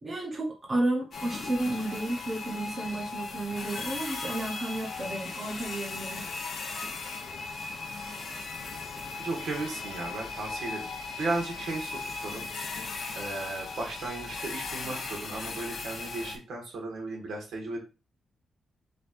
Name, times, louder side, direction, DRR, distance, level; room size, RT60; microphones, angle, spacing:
voice 1, 0.0-6.2, right 1 dB, 25° right, -1 dB, 0.9 m, -32 dB
sound 1, 1.1-16.4, left 4 dB, 50° left, 0.8 m, -37 dB
voice 2, 9.2-10.9 11.2-12.5 13.1-17.8, right 2 dB, 80° right, 0 dB, 1.7 m, -35 dB
5.1 x 3.4 x 2.6 m, 0.32 s
wide cardioid pair, 180°, 0 cm